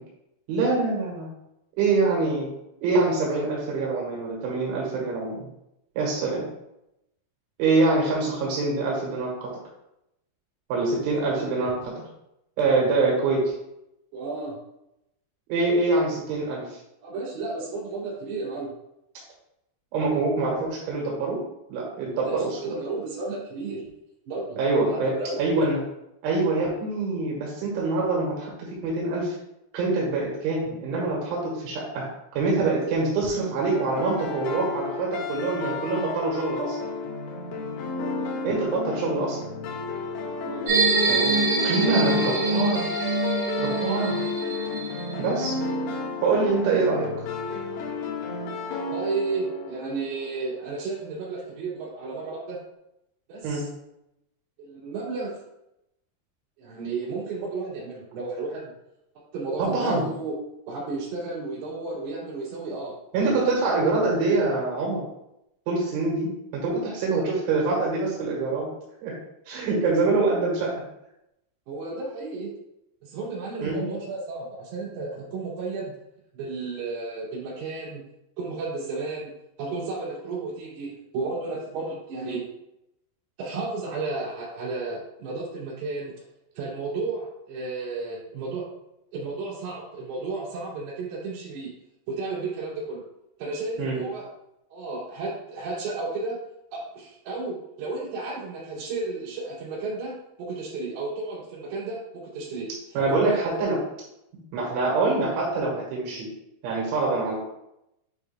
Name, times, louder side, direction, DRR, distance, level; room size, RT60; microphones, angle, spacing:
voice 1, 0.5-1.3 1.8-2.5 2.8-5.5 6.0-6.5 7.6-9.5 10.7-12.0 12.6-13.5 15.5-16.7 19.9-21.4 21.7-22.8 24.6-25.8 26.2-29.4 29.7-32.1 32.4-36.9 38.4-39.4 41.1-41.3 41.6-42.9 43.6-44.2 45.2-45.6 46.2-47.1 53.4-53.7 59.6-60.1 63.1-65.0 65.7-68.7 69.0-69.1 69.5-70.7 73.6-73.9 93.8-94.0 103.0-103.8 104.5-106.3 106.6-107.4, right 3 dB, 85° right, -4 dB, 3.9 m, -25 dB
voice 2, 14.1-14.6 17.0-18.7 22.2-23.8 24.3-24.6 24.9-25.4 40.4-40.7 48.8-52.6 53.3-53.7 54.6-55.4 56.6-58.7 59.3-60.3 60.7-63.0 63.2-63.5 71.7-72.5 73.0-76.0 76.3-78.0 78.4-79.3 79.6-82.5 83.4-86.1 86.6-88.7 89.1-91.7 92.1-93.0 93.4-94.3 94.7-96.4 96.7-102.7 103.1-103.5, right 3 dB, 60° right, -7 dB, 4.2 m, -33 dB
sound 1, 33.7-50.6, left 3 dB, 85° left, 3.7 m, -32 dB
sound 2, 40.7-45.4, right 2 dB, 45° right, 2.6 m, -25 dB
9.1 x 5.1 x 2.3 m, 0.84 s
omnidirectional pair, 5.3 m